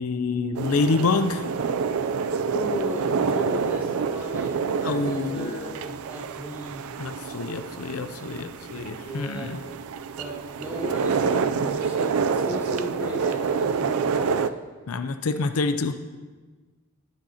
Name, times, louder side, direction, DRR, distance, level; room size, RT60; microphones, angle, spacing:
voice 1, 0.0-1.4 4.8-5.6 7.0-9.6 14.9-15.9, left 3 dB, 85° left, 9 dB, 0.5 m, -27 dB
sound 1, 0.5-14.5, right 6 dB, 80° right, 0.4 m, -27 dB
voice 2, 2.4-6.8 8.7-9.6 10.2-14.5, equal, 10° right, -9 dB, 3.3 m, -35 dB
18.5 x 6.3 x 2.8 m, 1.4 s
head